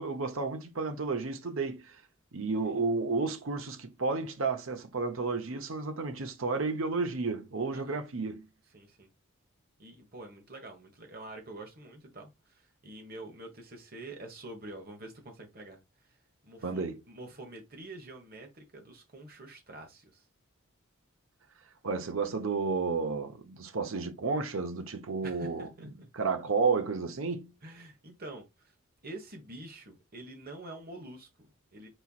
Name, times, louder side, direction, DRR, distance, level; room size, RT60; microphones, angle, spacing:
voice 1, 0.0-2.0 2.3-8.5 16.6-16.9 21.8-25.9 26.1-27.5, right 4 dB, 70° right, 0.8 m, -32 dB
voice 2, 7.7-8.0 8.7-9.1 9.8-16.2 16.4-20.2 25.2-26.1 27.6-28.7 29.0-31.9, right 2 dB, 45° right, 1.4 m, -47 dB
4.4 x 4.3 x 2.4 m
head